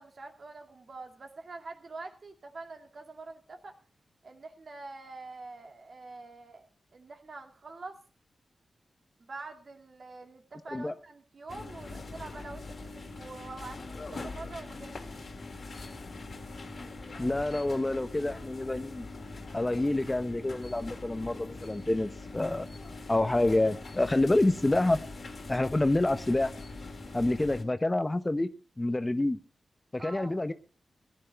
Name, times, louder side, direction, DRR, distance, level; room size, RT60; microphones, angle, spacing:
voice 1, 0.0-3.8 4.2-8.0 9.2-14.9 30.0-30.4, right 3 dB, 60° right, 2.4 m, -45 dB
sound 1, 11.5-27.6, left 3 dB, 60° left, 2.2 m, -42 dB
voice 2, 17.2-19.1 19.5-22.7 23.1-25.0 25.5-26.5 27.1-28.5 28.8-29.4 29.9-30.5, left 2 dB, 25° left, 0.9 m, -27 dB
15.5 x 10.5 x 4.5 m
cardioid pair, 55°, 0 cm